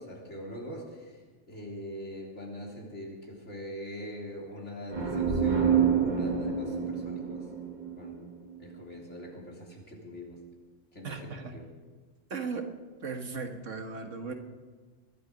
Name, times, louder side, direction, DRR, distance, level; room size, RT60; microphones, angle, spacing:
voice 1, 0.0-7.5 8.0-8.3 8.6-10.4 10.9-11.6, equal, 70° left, -2 dB, 3.7 m, -42 dB
sound 1, 4.9-8.6, right 7 dB, 40° right, 1.5 m, -28 dB
voice 2, 11.0-11.6 12.3-12.7 13.0-14.3, right 4 dB, 75° right, 5 dB, 1.8 m, -36 dB
21.0 x 12.5 x 5.2 m, 1.4 s
omnidirectional pair, 1.3 m